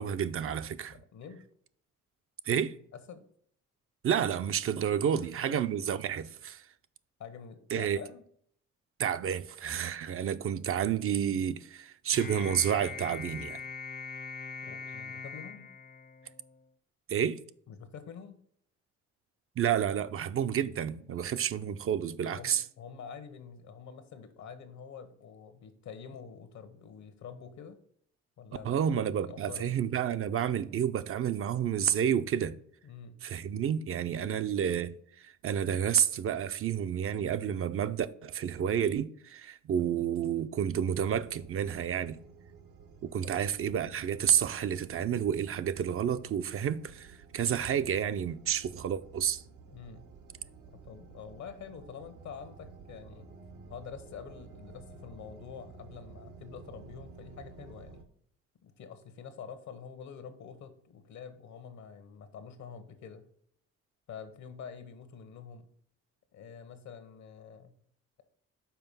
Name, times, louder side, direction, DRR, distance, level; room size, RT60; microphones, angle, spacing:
voice 1, 0.0-1.0 2.5-2.7 4.0-6.6 7.7-8.0 9.0-13.6 17.1-17.4 19.6-22.6 28.6-32.6 33.2-35.0 35.2-42.2 43.0-49.4, right 9 dB, 50° right, 0.5 m, -30 dB
voice 2, 0.9-1.4 2.9-3.2 5.1-5.6 7.2-8.2 14.6-15.7 17.7-18.4 22.2-27.8 28.4-29.8 32.8-33.2 43.2-43.4 49.7-50.1 50.7-53.3 53.7-58.0 58.6-63.3 64.1-65.6 66.3-67.7, left 6 dB, 70° left, 1.1 m, -47 dB
sound 1, 12.1-16.6, left 5 dB, 35° left, 0.6 m, -42 dB
sound 2, 40.8-58.0, right 4 dB, 80° right, 1.0 m, -52 dB
5.9 x 4.4 x 5.4 m
cardioid pair, 90°, 30 cm